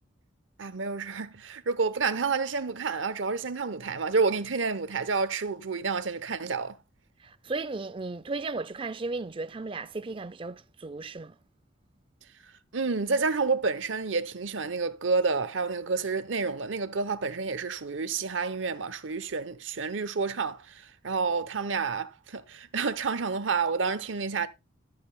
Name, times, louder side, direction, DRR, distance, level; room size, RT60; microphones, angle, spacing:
voice 1, 0.6-6.8 12.7-24.5, right 4 dB, 75° right, 0.9 m, -29 dB
voice 2, 7.2-11.4, right 3 dB, 25° right, 0.4 m, -35 dB
13.0 x 8.8 x 2.3 m
head